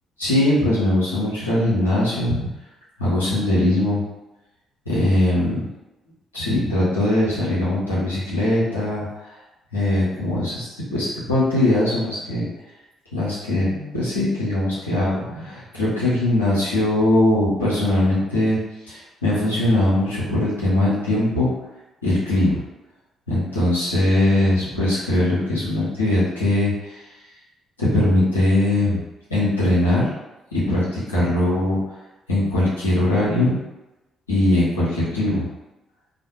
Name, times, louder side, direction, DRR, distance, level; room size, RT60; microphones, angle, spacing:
voice 1, 0.2-2.4 3.0-4.0 4.9-5.6 6.3-9.1 9.7-12.5 13.1-18.6 18.9-21.5 22.0-22.6 23.3-27.0 27.8-29.0 29.3-30.1 30.5-31.8 32.3-33.6 34.3-35.5, left 1 dB, 90° left, -9 dB, 0.7 m, -20 dB
2.4 x 2.1 x 2.8 m, 0.99 s
figure-of-eight pair, 45°, 0 cm